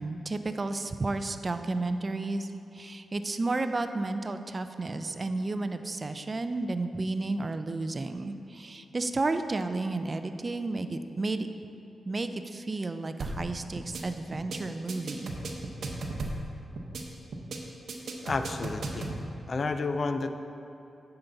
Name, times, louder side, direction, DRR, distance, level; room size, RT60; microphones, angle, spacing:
voice 1, 0.0-11.5 12.0-15.3, right 2 dB, 35° right, 9 dB, 0.5 m, -32 dB
sound 1, 13.2-13.5 13.8-14.0 14.3-14.6 14.9-16.5 16.8-17.0 17.3-17.6 17.9-19.2, right 3 dB, 75° right, 0.9 m, -35 dB
voice 2, 18.2-19.2 19.5-20.3, left 3 dB, 50° left, 8 dB, 0.5 m, -31 dB
9.5 x 7.0 x 4.0 m, 2.9 s
cardioid pair, 75°, 0 cm